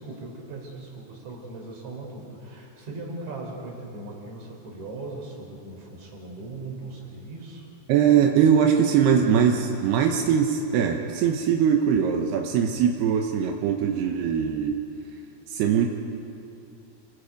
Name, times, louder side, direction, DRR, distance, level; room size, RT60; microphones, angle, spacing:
voice 1, 0.0-7.7, right 2 dB, 50° right, -1 dB, 5.0 m, -39 dB
voice 2, 7.9-14.8 15.5-15.9, right 7 dB, 85° right, 2 dB, 3.1 m, -21 dB
28.5 x 20.5 x 5.2 m, 2.8 s
omnidirectional pair, 4.5 m